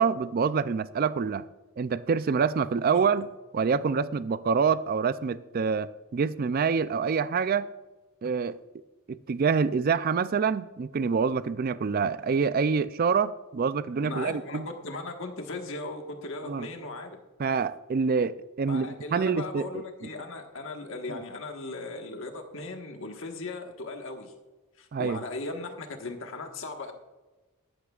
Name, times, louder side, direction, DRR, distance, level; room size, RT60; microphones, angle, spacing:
voice 1, 0.0-1.4 1.8-3.3 3.5-7.7 8.2-8.6 9.1-14.7 16.4-16.7 17.4-19.8 21.1-21.2 24.9-25.2, right 5 dB, 40° right, 0.3 m, -26 dB
voice 2, 14.0-17.2 18.7-24.3 24.8-26.9, left 3 dB, 60° left, 1.4 m, -37 dB
13.5 x 12.5 x 2.4 m
head